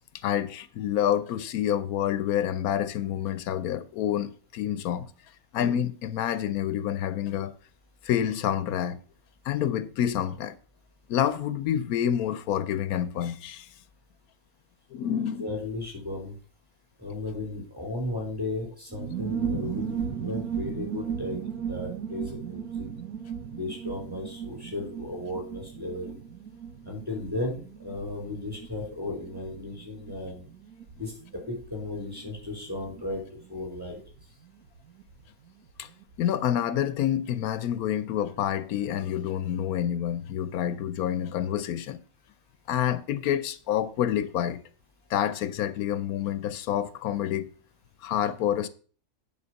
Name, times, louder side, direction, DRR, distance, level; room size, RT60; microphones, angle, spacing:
voice 1, 0.2-5.1 5.5-7.5 8.0-9.0 9.4-10.5 11.1-13.7 14.9-15.5 35.8-35.9 36.2-42.0 42.7-44.6 45.1-47.5 48.0-48.7, left 10 dB, 85° left, 1.1 m, -28 dB
voice 2, 15.4-16.4 17.0-21.4 21.7-22.9 23.5-26.2 26.8-30.5 31.0-34.0, left 2 dB, 5° right, 4.2 m, -35 dB
sound 1, 18.9-35.2 35.5-35.6 35.8-36.2, right 7 dB, 85° right, 1.6 m, -37 dB
9.6 x 4.9 x 6.3 m
omnidirectional pair, 1.5 m